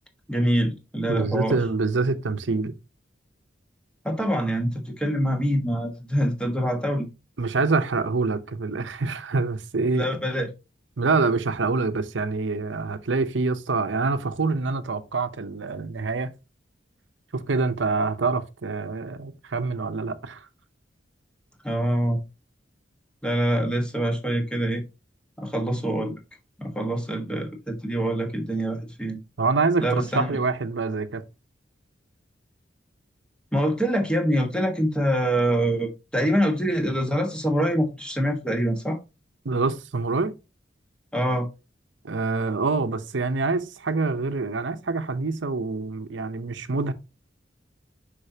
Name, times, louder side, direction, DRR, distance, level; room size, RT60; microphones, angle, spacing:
voice 1, 0.3-1.6 4.0-7.1 9.9-10.5 21.6-22.2 23.2-24.8 25.4-26.2 26.6-29.2 29.8-30.3 33.5-39.0 41.1-41.5, equal, 5° left, 1.3 m, -25 dB
voice 2, 1.1-2.7 7.4-10.0 11.0-16.3 17.3-20.5 29.4-31.2 39.4-40.3 42.0-46.9, right 3 dB, 80° right, 0.7 m, -26 dB
6.6 x 5.4 x 2.8 m
head